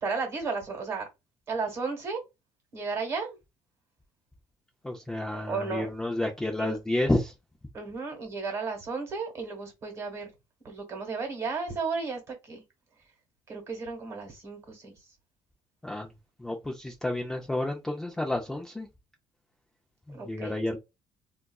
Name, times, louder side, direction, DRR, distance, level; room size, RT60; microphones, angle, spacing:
voice 1, 0.0-1.1 1.5-2.2 2.7-3.4 5.3-5.9 6.6-6.8 7.7-10.3 10.6-12.6 13.5-14.9 20.1-20.6, right 4 dB, 30° right, 1.1 m, -34 dB
voice 2, 4.8-7.3 15.8-16.1 16.4-18.9 20.1-20.8, left 1 dB, 5° left, 0.3 m, -30 dB
3.8 x 2.3 x 2.2 m
cardioid pair, 170°, 9 cm